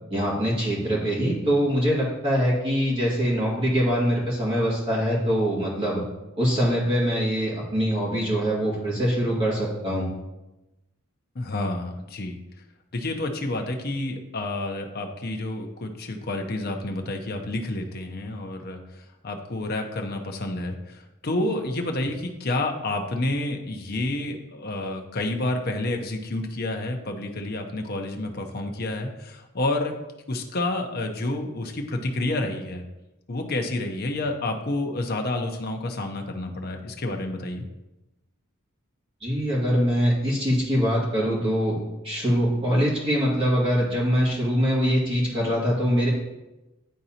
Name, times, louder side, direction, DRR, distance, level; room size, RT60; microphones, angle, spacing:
voice 1, 0.1-6.0 6.3-10.1 39.2-41.8 42.0-46.1, equal, 25° right, -6 dB, 2.0 m, -23 dB
voice 2, 11.3-12.4 12.9-29.9 30.3-32.8 33.3-37.6, left 2 dB, 45° left, 4 dB, 0.7 m, -29 dB
10.5 x 3.9 x 2.8 m, 0.99 s
head